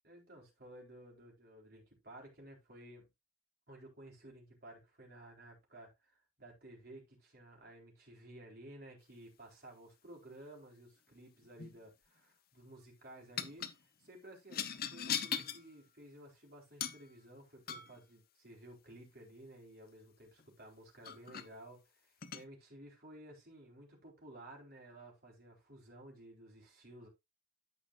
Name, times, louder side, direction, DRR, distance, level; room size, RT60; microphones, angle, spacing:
voice 1, 0.0-3.1 3.7-27.1, right 1 dB, 50° right, 3.9 m, -55 dB
sound 1, 11.4-11.8 13.4-13.8 14.5-15.6 16.8-17.1 17.7-18.0 20.4-20.5 21.0-21.5 22.2-22.4, left 8 dB, 50° left, 0.9 m, -39 dB
14.0 x 5.2 x 2.5 m
head